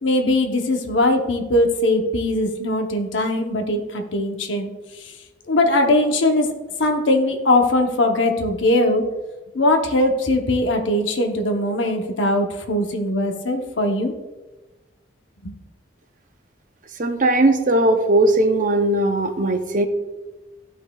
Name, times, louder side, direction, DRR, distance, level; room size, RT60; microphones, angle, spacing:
voice 1, 0.0-4.7 5.0-5.1 5.5-6.5 6.8-9.0 9.5-14.1 15.4-15.5, left 1 dB, 90° left, 4 dB, 0.9 m, -20 dB
voice 2, 17.0-19.9, right 2 dB, 45° right, 7 dB, 0.7 m, -18 dB
13.0 x 5.5 x 2.3 m, 1.2 s
head